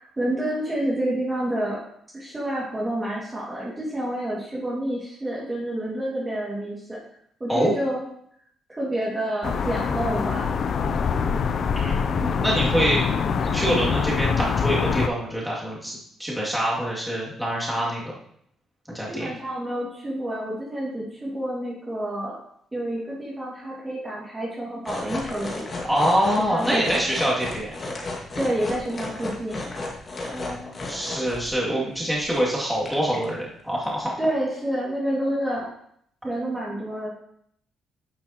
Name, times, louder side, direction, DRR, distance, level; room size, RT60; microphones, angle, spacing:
voice 1, 0.0-1.8 2.1-7.0 7.4-8.0 8.7-10.5 19.1-22.4 22.7-25.7 26.5-26.9 28.4-29.6 34.2-35.7 36.2-37.1, right 1 dB, 20° right, -5 dB, 2.2 m, -28 dB
sound 1, 9.4-15.1, left 6 dB, 55° left, 0.5 m, -24 dB
voice 2, 11.7-13.0 13.4-18.2 18.9-19.3 25.9-27.7 30.3-34.1, equal, 5° right, -5 dB, 2.5 m, -25 dB
sound 2, 24.8-31.5 31.9-32.4 32.7-33.3 33.8-33.9, left 2 dB, 40° left, 2.0 m, -34 dB
9.9 x 5.7 x 3.0 m, 0.69 s
cardioid pair, 90°, 0 cm